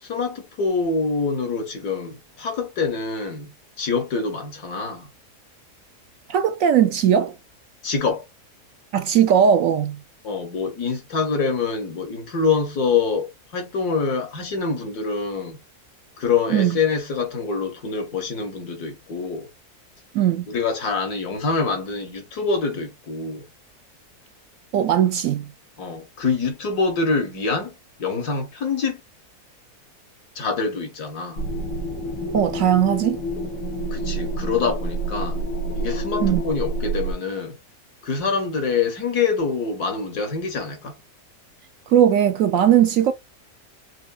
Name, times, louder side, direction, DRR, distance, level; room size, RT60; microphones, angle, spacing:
voice 1, 0.0-5.1 7.8-8.3 10.2-15.6 16.2-19.5 20.5-23.5 25.8-27.7 28.0-29.0 30.4-31.4 33.9-35.4 35.7-37.6 38.0-40.9, left 4 dB, 70° left, 1.9 m, -25 dB
voice 2, 6.3-7.4 8.9-10.0 16.5-16.8 20.1-20.5 24.7-25.5 32.3-33.2 36.2-36.4 41.9-43.1, right 9 dB, 70° right, 0.8 m, -18 dB
sound 1, 31.4-37.1, right 1 dB, 90° left, 2.2 m, -28 dB
6.2 x 2.8 x 2.3 m
omnidirectional pair, 1.7 m